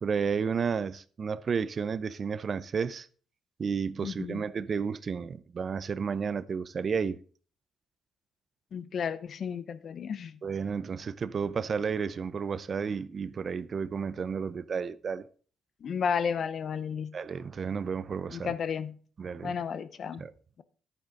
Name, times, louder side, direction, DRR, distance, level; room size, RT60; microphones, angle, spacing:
voice 1, 0.0-3.1 3.6-7.2 10.4-15.3 17.1-18.5 19.2-19.6 20.2-20.3, right 6 dB, 45° right, 0.6 m, -32 dB
voice 2, 4.0-4.4 8.7-10.4 15.8-17.1 18.3-18.9 19.4-20.2, left 7 dB, 55° left, 0.8 m, -32 dB
11.0 x 9.0 x 3.8 m
cardioid pair, 90°, 0 cm